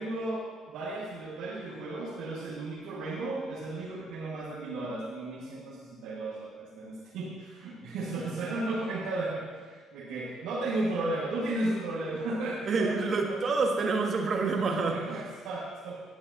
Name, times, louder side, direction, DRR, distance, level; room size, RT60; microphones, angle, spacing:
voice 1, 0.0-13.4 14.7-16.0, right 2 dB, 70° right, -7 dB, 1.7 m, -34 dB
voice 2, 12.7-15.2, right 4 dB, 45° right, 2 dB, 1.5 m, -28 dB
19.0 x 7.0 x 2.8 m, 1.5 s
hypercardioid pair, 55°, 0 cm